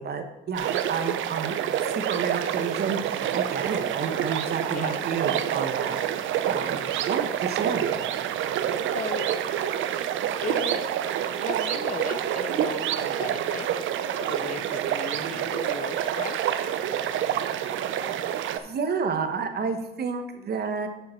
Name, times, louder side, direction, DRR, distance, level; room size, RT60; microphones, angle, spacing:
voice 1, 0.0-1.6 1.8-7.8 18.0-18.1 18.5-20.9, right 5 dB, 55° right, 7 dB, 1.1 m, -30 dB
sound 1, 0.5-18.6, right 10 dB, 80° right, 0.6 m, -27 dB
voice 2, 4.7-5.0 8.8-9.3 10.4-10.9 11.4-16.4, left 8 dB, 45° left, 15 dB, 0.5 m, -37 dB
7.7 x 7.0 x 4.4 m, 1.0 s
cardioid pair, 90°, 20 cm